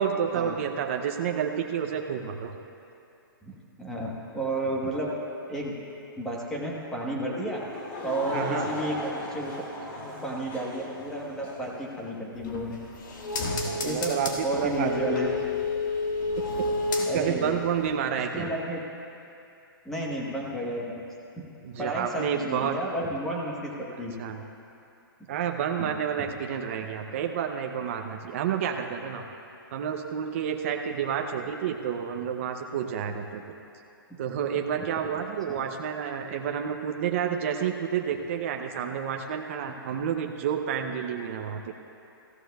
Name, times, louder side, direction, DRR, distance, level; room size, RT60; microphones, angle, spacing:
voice 1, 0.0-2.5 8.3-8.7 13.6-15.3 16.6-18.5 21.6-22.8 24.2-24.4 25.3-29.2 29.7-33.4 34.2-41.8, right 8 dB, 35° right, 3 dB, 0.5 m, -30 dB
voice 2, 3.4-5.1 5.5-5.7 6.2-7.6 8.0-9.5 10.0-12.8 13.8-14.2 14.4-15.3 17.0-17.6 18.3-18.8 19.8-21.0 21.8-23.7 24.0-24.1 25.8-25.9 35.5-35.6, right 1 dB, 5° left, -3 dB, 1.1 m, -32 dB
Laughter / Crowd, 7.5-11.8, left 1 dB, 35° left, 2.3 m, -37 dB
sound 1, 12.4-17.5 17.8-17.9, left 2 dB, 55° left, 1.6 m, -30 dB
19.0 x 14.5 x 2.3 m, 2.7 s
hypercardioid pair, 170°, 12 cm